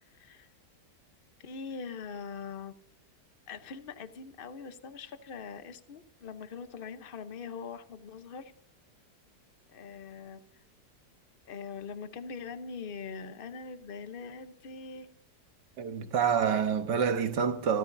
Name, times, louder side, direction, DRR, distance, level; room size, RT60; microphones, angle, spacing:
voice 1, 0.1-0.5 1.4-2.7 3.5-8.5 9.7-10.6 11.5-15.1 16.5-16.6, left 5 dB, 40° left, 0.8 m, -42 dB
voice 2, 15.8-17.8, right 7 dB, 85° right, 1.8 m, -27 dB
26.5 x 14.0 x 2.6 m
omnidirectional pair, 1.8 m